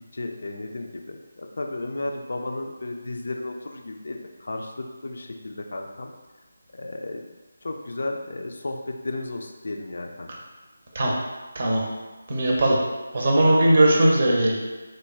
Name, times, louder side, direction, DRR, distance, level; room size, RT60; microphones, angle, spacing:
voice 1, 0.1-6.1 6.7-7.2 7.6-10.3, left 2 dB, 55° left, 3 dB, 0.3 m, -33 dB
voice 2, 12.3-12.8 13.1-14.6, right 1 dB, 35° right, -3 dB, 0.6 m, -19 dB
3.1 x 2.1 x 3.4 m, 1.2 s
figure-of-eight pair, 155°, 0 cm